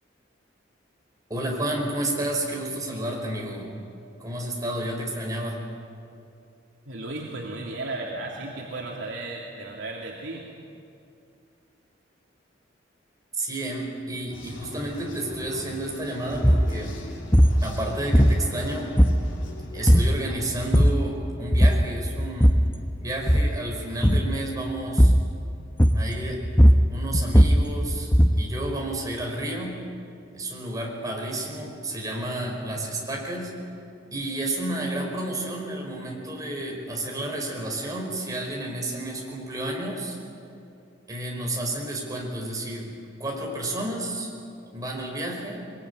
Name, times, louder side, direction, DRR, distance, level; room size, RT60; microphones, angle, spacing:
voice 1, 1.3-3.7 4.2-5.6 13.4-17.0 17.6-18.9 19.7-22.5 23.0-25.1 25.9-26.4 26.9-28.1 28.4-29.8 30.3-33.5 34.1-40.2 41.1-42.9 43.2-44.3 44.7-45.6, right 1 dB, 20° right, -1 dB, 5.1 m, -31 dB
voice 2, 6.9-10.4, right 2 dB, 80° right, -3 dB, 2.9 m, -34 dB
sound 1, 14.3-20.1, left 1 dB, 80° left, 4.0 m, -41 dB
sound 2, 16.4-16.7 17.3-17.6 18.1-18.6 19.0-19.5 19.9-20.2 20.6-21.1 21.5-21.9 22.2-22.7 23.2-23.6 24.0-24.3 25.0-25.3 25.8-26.2 26.4-28.5, equal, 10° left, 1.0 m, -17 dB
23.0 x 22.5 x 9.7 m, 2.5 s
head